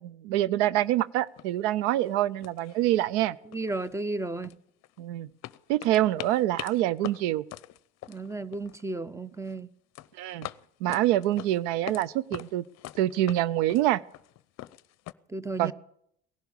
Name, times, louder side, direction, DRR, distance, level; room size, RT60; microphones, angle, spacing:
voice 1, 0.0-3.4 5.0-5.3 5.7-7.4 10.2-10.5 10.8-12.6 13.0-14.0 15.6-15.7, right 14 dB, 75° right, 0.7 m, -26 dB
sound 1, 0.8-0.9 1.4-1.7 1.9-2.2 2.4-3.2 3.5-5.0 5.4-8.9 9.2-9.6 9.9-12.1 12.3-15.1, left 16 dB, 50° left, 0.6 m, -43 dB
voice 2, 3.5-4.5 8.1-9.7 15.3-15.7, right 2 dB, 10° right, 0.7 m, -33 dB
18.0 x 11.5 x 6.8 m
hypercardioid pair, 80°, 34 cm